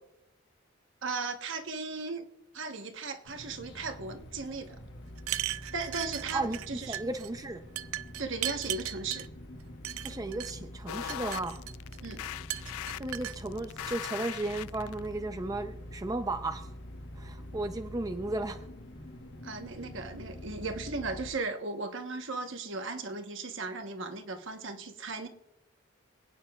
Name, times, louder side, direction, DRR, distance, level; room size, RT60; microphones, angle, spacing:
voice 1, 1.0-2.3 2.5-4.7 5.7-7.0 8.2-9.3 12.0-12.2 19.4-25.3, right 3 dB, 60° right, 1.0 m, -36 dB
sound 1, 3.2-21.3, equal, 55° left, 1.2 m, -46 dB
sound 2, 5.2-6.7 6.9-7.3 7.8-9.3 9.8-10.5 10.9-12.0 12.5-13.4, right 14 dB, 80° right, 0.4 m, -36 dB
voice 2, 6.3-7.6 10.0-11.6 13.0-16.7 17.2-18.6, right 2 dB, 15° right, 0.5 m, -34 dB
sound 3, 10.9-15.1, left 11 dB, 85° left, 0.3 m, -39 dB
26.5 x 9.1 x 2.3 m
head